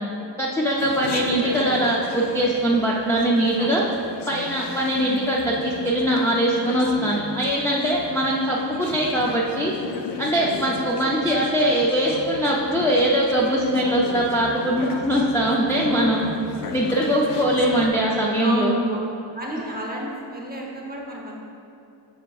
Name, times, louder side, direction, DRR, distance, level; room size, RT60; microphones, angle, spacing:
voice 1, 0.4-3.8 4.3-9.7 10.2-16.2 16.7-18.7, right 1 dB, 5° left, -4 dB, 0.3 m, -21 dB
Chatter, 0.8-17.9, left 5 dB, 65° left, 0.5 m, -36 dB
voice 2, 18.4-19.0 19.3-21.4, equal, 20° right, -2 dB, 0.7 m, -31 dB
6.7 x 6.1 x 2.3 m, 2.7 s
wide cardioid pair, 165°, 45 cm